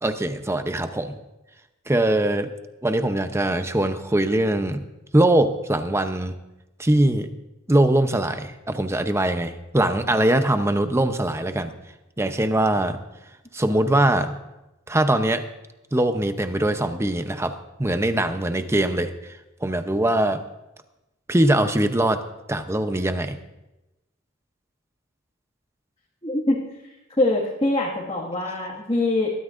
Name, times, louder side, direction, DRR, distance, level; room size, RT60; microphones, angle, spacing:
voice 1, 0.0-1.2 1.9-2.5 2.8-4.8 5.1-6.3 6.8-7.3 7.7-11.7 12.2-13.0 13.5-14.4 14.9-15.4 15.9-19.1 19.6-20.4 21.3-22.2 22.5-23.4, right 1 dB, 15° right, 8 dB, 0.7 m, -22 dB
voice 2, 26.2-26.6 27.2-29.3, left 2 dB, 25° left, -5 dB, 1.9 m, -23 dB
21.0 x 13.5 x 2.6 m, 0.97 s
head